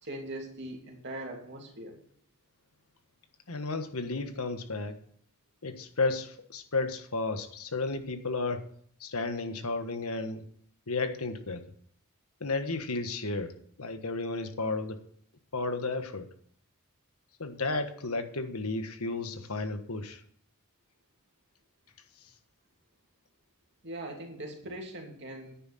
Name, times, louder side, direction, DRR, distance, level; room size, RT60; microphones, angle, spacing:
voice 1, 0.0-2.0 23.8-25.5, right 1 dB, 50° right, 1 dB, 2.8 m, -41 dB
voice 2, 3.5-5.0 5.6-8.6 9.0-10.4 10.9-11.6 12.4-13.5 13.8-15.0 15.5-16.3 17.4-20.2, left 3 dB, 80° left, 8 dB, 1.4 m, -33 dB
10.0 x 9.8 x 4.3 m, 0.63 s
head